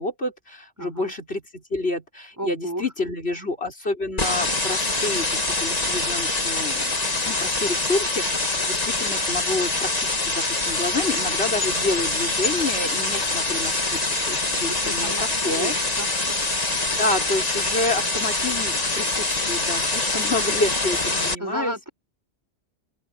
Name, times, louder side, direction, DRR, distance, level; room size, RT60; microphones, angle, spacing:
voice 1, 0.0-6.9 7.3-15.1 15.4-15.7 16.5-21.9, left 2 dB, 60° left, 5.2 m, -29 dB
voice 2, 0.8-1.1 2.4-3.1 14.7-16.4 21.4-21.9, equal, 15° right, 5.4 m, -33 dB
sound 1, 4.2-21.3, left 2 dB, 35° left, 2.0 m, -25 dB
open air
omnidirectional pair, 1.2 m